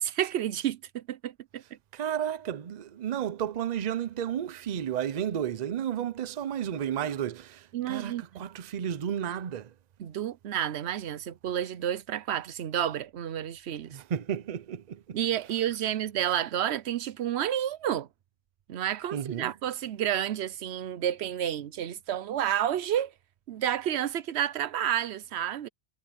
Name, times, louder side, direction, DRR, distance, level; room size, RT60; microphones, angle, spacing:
voice 1, 0.0-1.8 7.7-8.4 10.0-14.0 15.1-18.1 18.7-23.1 23.5-25.7, right 10 dB, 90° right, 1.0 m, -30 dB
voice 2, 1.9-9.7 13.9-15.2 15.5-15.6 19.1-19.5, right 9 dB, 50° right, 0.7 m, -32 dB
omnidirectional pair, 1.1 m